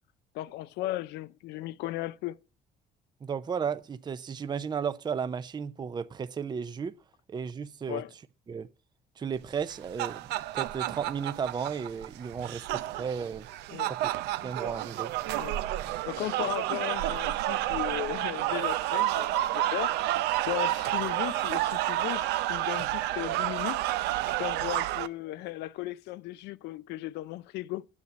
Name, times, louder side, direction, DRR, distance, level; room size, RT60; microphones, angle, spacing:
voice 1, 0.3-2.4 7.9-8.1 13.7-14.0 15.3-15.6 16.1-19.9 20.5-23.8 24.4-27.9, left 16 dB, 85° left, 0.5 m, -36 dB
voice 2, 3.2-6.9 7.3-8.0 8.5-8.7 9.2-10.2 10.5-13.5 14.4-15.1, right 6 dB, 25° right, 0.6 m, -34 dB
sound 1, 9.6-25.1, right 15 dB, 90° right, 0.6 m, -30 dB
9.7 x 8.1 x 7.3 m
cardioid pair, 110°, 17 cm